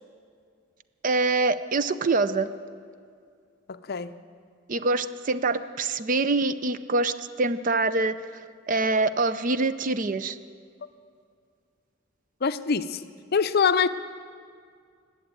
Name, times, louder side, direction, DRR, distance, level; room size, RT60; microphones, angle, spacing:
voice 1, 1.0-2.5 4.7-8.2 8.7-10.4, right 3 dB, 40° right, 13 dB, 0.5 m, -25 dB
voice 2, 3.7-4.1 12.4-13.0 13.3-13.9, left 6 dB, 50° left, 12 dB, 0.5 m, -24 dB
19.5 x 8.0 x 8.9 m, 2.2 s
head